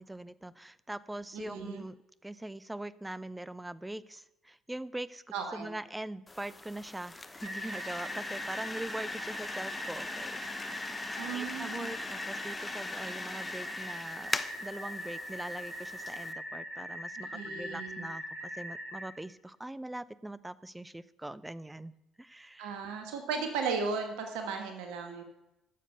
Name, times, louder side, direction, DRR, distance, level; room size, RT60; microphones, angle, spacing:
voice 1, 0.0-2.0 2.2-5.2 5.5-11.0 11.3-21.9 22.2-22.8, right 1 dB, 10° right, 18 dB, 0.6 m, -42 dB
voice 2, 1.3-1.8 5.3-5.7 11.2-11.9 17.3-18.1 22.6-25.2, right 5 dB, 65° right, 5 dB, 1.5 m, -36 dB
sound 1, 6.3-16.3, left 3 dB, 20° left, 0.9 m, -41 dB
sound 2, 7.4-19.0, equal, 75° left, 5.4 m, -41 dB
12.0 x 7.5 x 6.6 m, 0.95 s
figure-of-eight pair, 55°, 0 cm